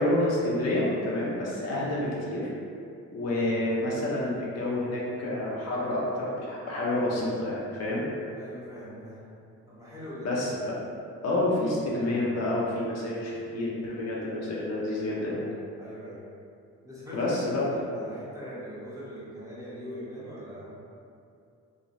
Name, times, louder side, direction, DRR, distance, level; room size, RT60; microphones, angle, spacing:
voice 1, 0.0-2.5 3.1-8.0 10.2-10.8 11.2-15.5 17.1-17.6, left 1 dB, 60° left, -5 dB, 0.7 m, -28 dB
voice 2, 8.3-9.3 9.7-10.3 15.1-15.5 15.8-16.2 16.8-17.3 17.7-20.7, equal, 10° right, -10 dB, 1.0 m, -42 dB
3.1 x 2.3 x 2.6 m, 2.5 s
cardioid pair, 90°, 30 cm